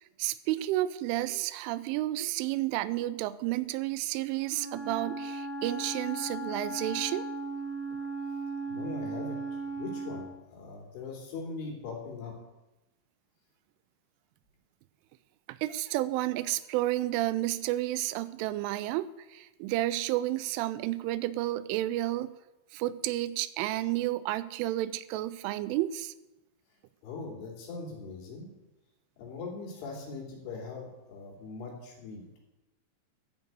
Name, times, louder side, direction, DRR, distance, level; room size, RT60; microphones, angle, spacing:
voice 1, 0.2-7.3 15.5-22.3 22.7-26.1, right 15 dB, 85° right, 15 dB, 3.1 m, -31 dB
Wind instrument woodwind instrument, 4.3-10.4, right 2 dB, 40° right, 2.5 m, -37 dB
voice 2, 8.7-9.4 9.8-12.3 27.0-28.5 29.2-32.4, left 4 dB, 75° left, -1 dB, 5.4 m, -41 dB
13.5 x 7.3 x 8.1 m, 1.0 s
omnidirectional pair, 5.6 m